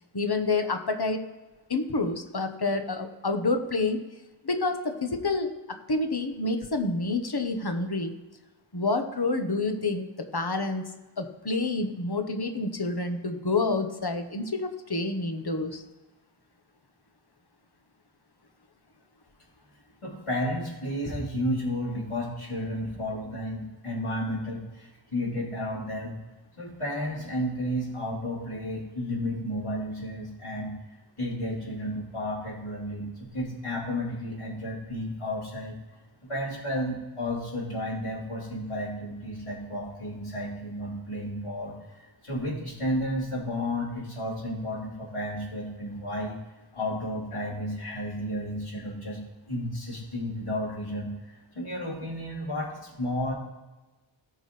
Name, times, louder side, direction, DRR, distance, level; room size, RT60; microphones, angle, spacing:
voice 1, 0.1-1.2 1.7-4.0 4.4-8.1 8.7-10.8 11.2-15.8, left 3 dB, 50° left, 6 dB, 1.3 m, -28 dB
voice 2, 20.0-26.2 26.6-30.7 31.2-35.8 36.3-46.4 46.7-49.2 49.5-51.1 51.5-53.3, equal, 85° left, -5 dB, 3.9 m, -32 dB
18.5 x 6.2 x 3.4 m, 1.1 s
wide cardioid pair, 40°, 49 cm